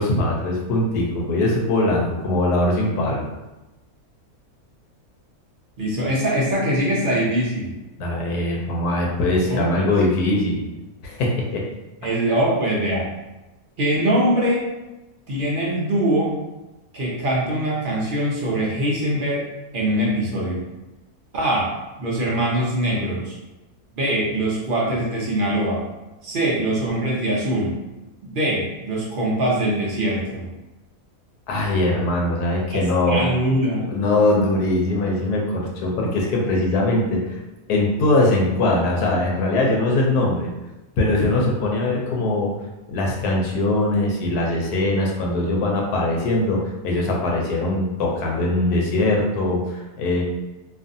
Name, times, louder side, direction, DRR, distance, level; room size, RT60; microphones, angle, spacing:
voice 1, 0.0-3.2 8.0-10.7 11.0-11.6 31.5-33.3 33.9-37.4 37.7-40.5 41.0-42.5 42.9-50.2, left 2 dB, 85° left, -1 dB, 1.2 m, -21 dB
voice 2, 5.8-7.8 9.5-9.8 12.0-13.1 13.8-14.7 15.3-16.4 16.9-20.6 21.3-21.7 22.0-23.3 23.9-25.8 26.2-27.7 28.2-30.5 33.1-33.9, right 1 dB, 70° right, -5 dB, 0.5 m, -22 dB
2.6 x 2.5 x 2.5 m, 1.1 s
omnidirectional pair, 1.6 m